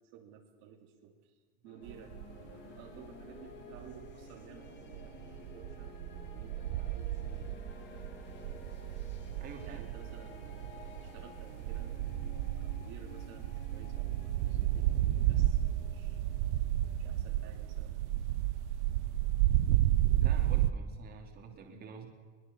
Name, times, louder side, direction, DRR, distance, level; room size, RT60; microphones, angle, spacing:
voice 1, 0.1-7.6 9.6-11.9 12.3-16.2 17.0-18.0, right 8 dB, 50° right, 1 dB, 2.8 m, -55 dB
sound 1, 1.6-19.9, left 5 dB, 35° left, 2.7 m, -54 dB
sound 2, 1.9-2.5 2.9-4.2 4.7-20.7, right 14 dB, 85° right, 1.0 m, -32 dB
voice 2, 9.4-9.8 20.2-22.1, right 5 dB, 30° right, 2 dB, 3.1 m, -48 dB
22.0 x 21.0 x 7.1 m, 1.4 s
supercardioid pair, 160°, 34 cm